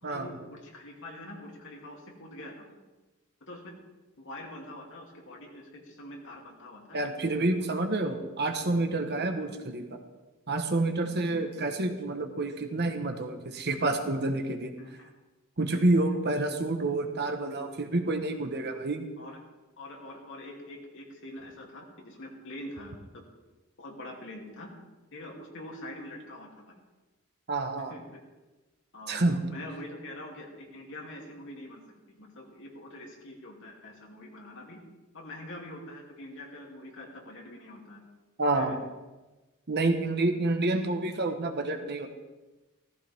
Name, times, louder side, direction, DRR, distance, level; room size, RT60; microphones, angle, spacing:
voice 1, 0.0-2.8 3.4-3.8 4.2-7.7 11.0-11.4 14.8-15.1 15.7-16.0 19.2-19.4 19.8-23.2 23.8-24.7 25.1-26.8 27.9-28.2 28.9-29.2 29.5-34.8 35.1-38.0 38.5-38.8, left 1 dB, 60° left, -1 dB, 3.0 m, -45 dB
voice 2, 6.9-10.0 10.5-14.7 15.6-19.1 27.5-27.9 29.1-29.4 38.4-38.8 39.7-42.1, right 2 dB, 50° right, 5 dB, 1.4 m, -28 dB
16.5 x 14.5 x 3.7 m, 1.1 s
head